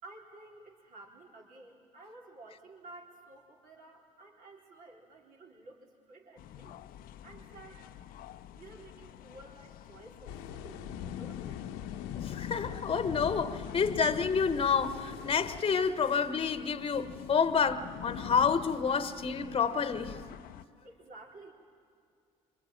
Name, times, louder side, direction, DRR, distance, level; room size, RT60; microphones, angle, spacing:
voice 1, 0.0-6.8 7.2-7.8 8.5-11.7 20.8-21.5, right 2 dB, 55° right, 4.3 m, -53 dB
sound 1, 6.4-20.6, left 11 dB, 60° left, 0.8 m, -45 dB
sound 2, 10.2-15.6, left 8 dB, 75° left, 1.1 m, -45 dB
voice 2, 12.1-20.2, left 6 dB, 35° left, 1.3 m, -29 dB
26.0 x 25.0 x 8.9 m
hypercardioid pair, 60°, 17 cm